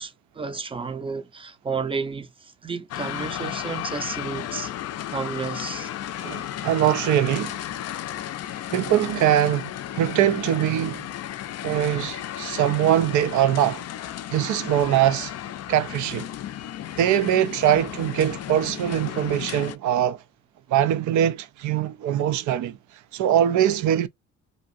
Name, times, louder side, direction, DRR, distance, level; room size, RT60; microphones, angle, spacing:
voice 1, 0.0-4.7 5.1-5.9, right 5 dB, 20° right, 0.5 m, -32 dB
sound 1, 2.9-19.8, left 12 dB, 55° left, 0.4 m, -34 dB
voice 2, 6.2-7.6 8.7-11.1 11.6-13.8 14.3-15.3 15.7-16.3 17.0-20.2 20.7-22.8 23.1-24.1, right 11 dB, 75° right, 0.5 m, -22 dB
2.7 x 2.4 x 2.6 m
cardioid pair, 90°, 30 cm